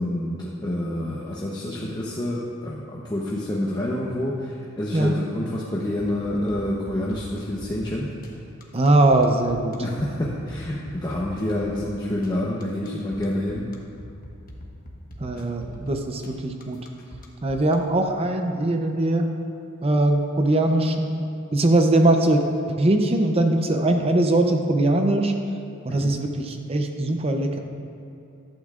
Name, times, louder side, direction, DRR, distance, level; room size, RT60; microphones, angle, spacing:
voice 1, 0.0-8.1 9.8-13.7 25.9-26.1, left 1 dB, 20° left, -5 dB, 0.8 m, -28 dB
sound 1, 6.0-17.8, left 1 dB, 40° left, 1.3 m, -42 dB
voice 2, 8.7-9.8 15.2-16.8 17.4-19.3 19.8-21.2 21.5-22.4 22.8-25.3 25.8-27.6, right 2 dB, 25° right, 4 dB, 0.6 m, -21 dB
15.0 x 12.0 x 2.5 m, 2.7 s
head